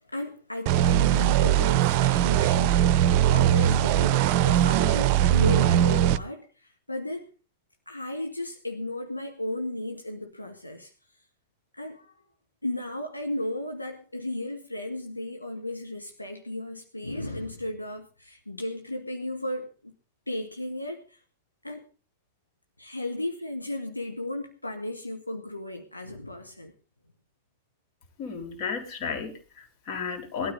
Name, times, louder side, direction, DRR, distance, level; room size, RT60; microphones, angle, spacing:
voice 1, 0.1-2.9 3.3-7.3 7.9-10.9 11.7-12.2 12.6-19.9 20.3-21.2 21.6-21.8 22.8-26.7, left 1 dB, 85° left, 1.6 m, -35 dB
sound 1, 0.7-6.2, right 11 dB, 45° right, 0.7 m, -21 dB
voice 2, 28.2-30.5, left 5 dB, 45° left, 4.1 m, -33 dB
19.5 x 13.0 x 3.9 m
figure-of-eight pair, 90°, 0 cm